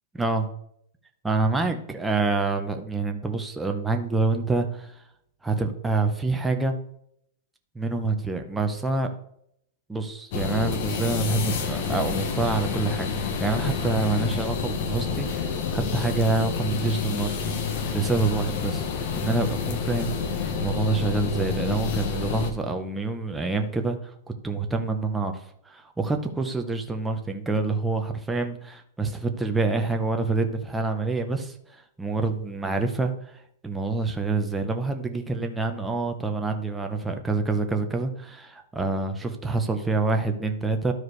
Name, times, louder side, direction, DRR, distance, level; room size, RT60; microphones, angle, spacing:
voice 1, 0.1-0.5 1.2-5.0 5.4-6.8 7.7-9.1 9.9-18.7 19.2-33.4 33.6-40.9, right 3 dB, 5° right, 4 dB, 0.7 m, -27 dB
sound 1, 10.3-22.5, left 5 dB, 45° left, 1.0 m, -28 dB
12.5 x 4.7 x 3.2 m, 0.72 s
supercardioid pair, 160°, 0 cm